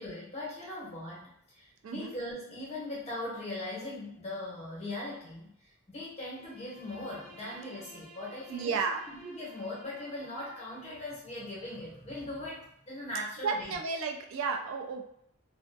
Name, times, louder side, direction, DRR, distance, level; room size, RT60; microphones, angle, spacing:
voice 1, 0.0-8.8 9.1-13.8, left 1 dB, 30° left, -6 dB, 1.0 m, -40 dB
Bowed string instrument, 6.2-11.1, right 1 dB, 35° right, 1.3 m, -54 dB
voice 2, 8.5-9.0 13.4-15.0, right 5 dB, 75° right, 3 dB, 0.3 m, -32 dB
2.4 x 2.2 x 2.5 m, 0.72 s
head